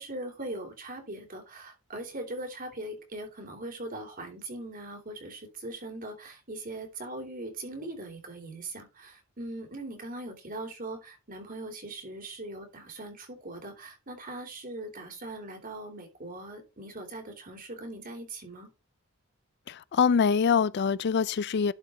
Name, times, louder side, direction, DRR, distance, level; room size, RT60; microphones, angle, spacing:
voice 1, 0.0-18.7, right 2 dB, 45° right, 3.4 m, -40 dB
voice 2, 19.7-21.7, left 6 dB, 55° left, 0.4 m, -24 dB
11.5 x 5.1 x 3.9 m
head